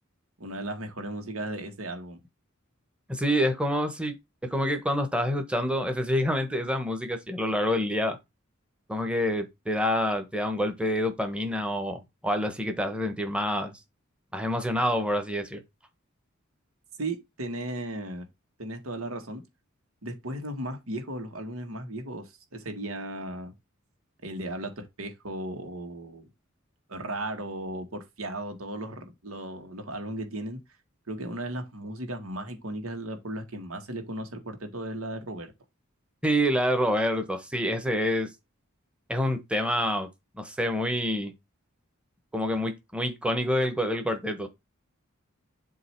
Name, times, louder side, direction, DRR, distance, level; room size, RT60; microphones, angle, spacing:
voice 1, 0.4-2.2 17.0-18.3 18.6-19.4 20.0-23.5 24.2-26.3 26.9-30.6 31.1-35.5, right 1 dB, 90° right, 1.7 m, -36 dB
voice 2, 3.1-4.2 4.4-8.2 8.9-13.8 14.3-15.6 36.2-38.3 39.1-40.1 40.4-41.3 42.3-44.5, equal, 5° right, 1.1 m, -27 dB
7.7 x 2.9 x 4.4 m
head